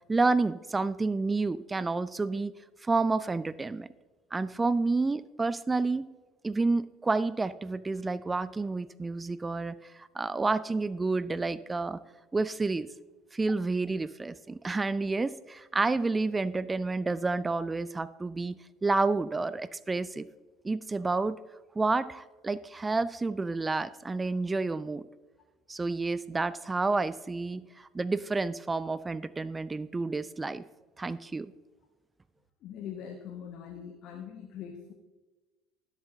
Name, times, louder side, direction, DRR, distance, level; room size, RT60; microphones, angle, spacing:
voice 1, 0.1-2.5 2.8-3.9 4.3-6.1 6.4-12.0 12.3-12.9 13.3-20.3 20.6-21.4 21.8-25.0 25.7-30.6 31.0-31.5, right 3 dB, 20° right, 17 dB, 0.4 m, -29 dB
voice 2, 32.6-34.9, left 8 dB, 55° left, 5 dB, 1.0 m, -42 dB
19.5 x 7.4 x 2.7 m, 1.2 s
hypercardioid pair, 60°, 0 cm